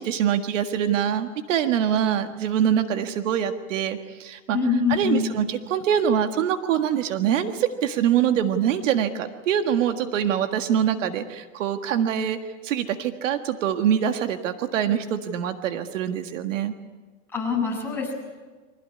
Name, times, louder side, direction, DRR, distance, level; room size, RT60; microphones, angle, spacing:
voice 1, 0.0-4.6 4.9-12.4 12.6-16.7, right 9 dB, 75° right, 7 dB, 1.8 m, -24 dB
voice 2, 4.5-5.4 17.3-18.1, left 5 dB, 5° left, -3 dB, 7.1 m, -24 dB
25.0 x 17.0 x 9.8 m, 1.3 s
supercardioid pair, 150°, 39 cm